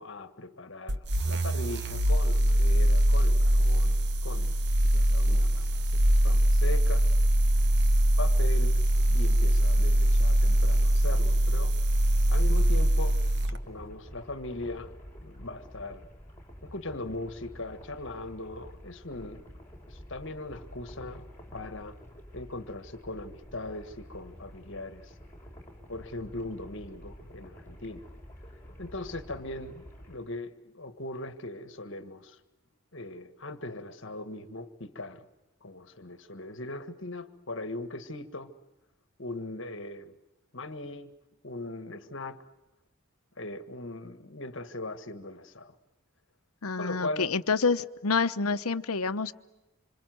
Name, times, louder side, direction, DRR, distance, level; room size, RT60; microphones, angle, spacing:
voice 1, 0.0-7.1 8.2-8.8 9.1-11.8 12.3-14.9 15.2-16.1 16.6-19.5 19.9-22.0 22.3-25.1 25.9-28.1 28.8-32.4 32.9-35.3 35.6-38.5 39.2-40.2 40.5-41.1 41.4-42.4 43.4-45.7 46.8-47.3, left 2 dB, 55° left, 1.7 m, -39 dB
sound 1, 0.9-13.6, right 1 dB, 50° right, 1.3 m, -23 dB
sound 2, 13.4-30.2, equal, 10° left, 6.7 m, -49 dB
voice 2, 46.6-49.3, left 4 dB, 85° left, 1.0 m, -28 dB
27.0 x 27.0 x 7.9 m
head